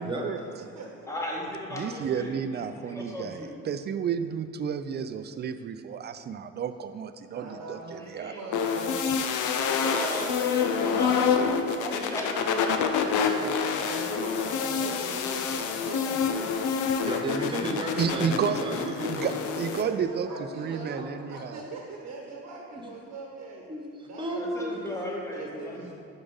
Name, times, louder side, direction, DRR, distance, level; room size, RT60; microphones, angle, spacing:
voice 1, 0.0-0.4 1.7-8.4 18.0-18.6 19.0-20.3 20.5-21.6, right 7 dB, 35° right, 10 dB, 0.4 m, -31 dB
voice 2, 0.5-1.0 7.3-9.2 9.6-11.2 13.4-16.6 17.9-18.0 19.8-23.7 24.0-24.8 25.1-25.9, right 3 dB, 65° right, -1 dB, 1.0 m, -41 dB
voice 3, 1.1-3.5 8.0-8.4 9.6-11.3 11.8-14.0 24.3-25.8, left 1 dB, 10° left, -2 dB, 1.3 m, -36 dB
sound 1, 8.5-19.8, left 6 dB, 80° left, 0.6 m, -27 dB
voice 4, 17.1-19.3 20.6-20.8 22.7-22.8 23.7-24.7, right 1 dB, 15° right, 0 dB, 1.1 m, -33 dB
5.2 x 4.9 x 5.4 m, 2.6 s
cardioid pair, 90°, 30 cm